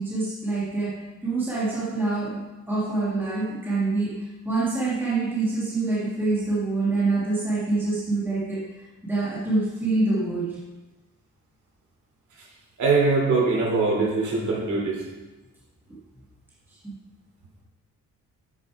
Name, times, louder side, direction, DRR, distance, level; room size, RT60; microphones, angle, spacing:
voice 1, 0.0-8.7 9.0-10.6, right 3 dB, 5° right, -7 dB, 1.7 m, -26 dB
voice 2, 12.8-15.0, right 3 dB, 70° right, -2 dB, 2.7 m, -22 dB
8.2 x 6.6 x 4.7 m, 1.1 s
wide cardioid pair, 165°, 31 cm